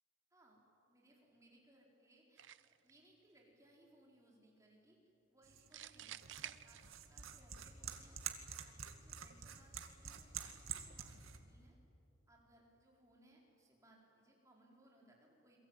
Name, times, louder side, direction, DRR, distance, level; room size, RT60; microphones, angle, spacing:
voice 1, 0.3-0.6 0.9-5.0 5.3-6.8 7.1-11.8 12.3-15.6, right 1 dB, 15° right, -2 dB, 4.8 m, -68 dB
sound 1, 2.4-2.9 5.7-7.3, right 11 dB, 60° right, 0.6 m, -51 dB
sound 2, 5.4-11.4, right 8 dB, 80° right, 2.1 m, -48 dB
28.5 x 22.5 x 9.2 m, 2.8 s
head